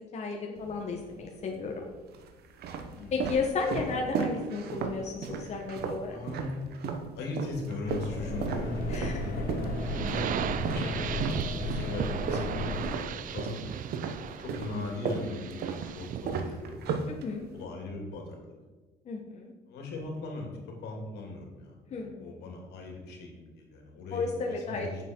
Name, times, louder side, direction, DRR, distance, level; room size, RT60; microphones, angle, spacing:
voice 1, 0.0-1.9 3.1-6.1 8.9-9.3 17.1-17.5 19.0-19.5 21.9-22.3 24.1-24.9, left 4 dB, 40° left, 1 dB, 1.2 m, -33 dB
sound 1, 0.6-1.3 2.0-7.1 7.4-13.6 13.9-17.6, right 6 dB, 70° right, 1.1 m, -35 dB
voice 2, 3.6-4.0 5.7-6.7 7.1-8.8 9.6-11.3 11.6-13.8 14.4-16.9 17.5-18.6 19.7-20.5 20.8-25.0, left 3 dB, 80° left, 1 dB, 2.6 m, -40 dB
sound 2, 7.8-12.9, left 2 dB, 60° left, 2.4 m, -34 dB
sound 3, 9.8-16.4, right 9 dB, 55° right, 0.5 m, -37 dB
8.7 x 7.1 x 4.5 m, 1.3 s
cardioid pair, 110°, 17 cm